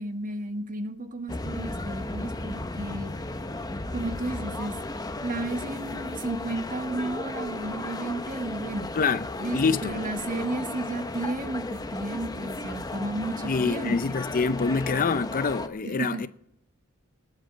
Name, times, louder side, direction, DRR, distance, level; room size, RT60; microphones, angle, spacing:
voice 1, 0.0-3.1 3.9-4.8 5.2-8.9 9.4-14.3 15.8-16.3, right 2 dB, 40° right, 1.4 m, -33 dB
sound 1, 1.3-15.7, left 2 dB, 15° left, 0.9 m, -35 dB
voice 2, 9.5-10.0 13.5-16.3, left 4 dB, 40° left, 0.6 m, -26 dB
19.5 x 7.9 x 7.2 m
head